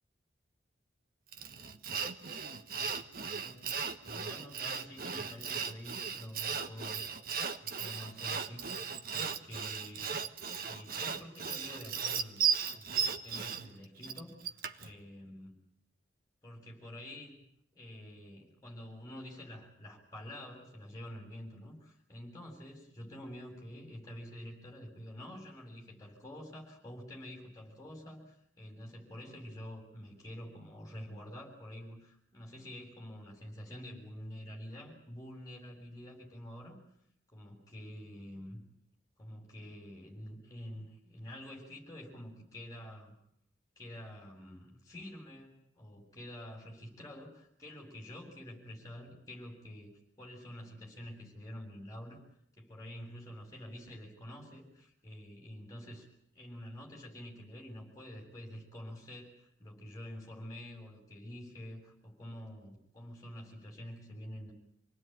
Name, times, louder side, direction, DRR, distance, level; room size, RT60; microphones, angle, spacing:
Sawing, 1.3-14.9, right 6 dB, 45° right, 1.5 m, -36 dB
voice 1, 2.7-3.6 4.0-7.0 7.6-8.8 9.1-10.1 10.6-15.5 16.4-17.4 17.7-36.8 37.3-38.6 39.2-43.2 43.8-49.9 50.2-52.2 52.6-56.1 56.3-64.5, equal, 20° left, 0 dB, 7.6 m, -48 dB
28.5 x 19.0 x 9.3 m, 0.69 s
head